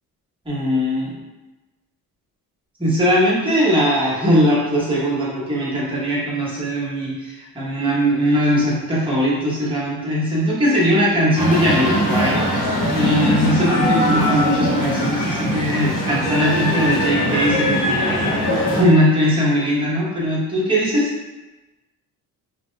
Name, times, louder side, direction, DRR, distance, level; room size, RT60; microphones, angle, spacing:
voice 1, 0.4-1.2 2.8-21.1, equal, 15° right, -7 dB, 1.0 m, -20 dB
sound 1, 11.4-18.8, equal, 65° left, 0.9 m, -20 dB
2.8 x 2.2 x 3.1 m, 1.1 s
cardioid pair, 105°, 36 cm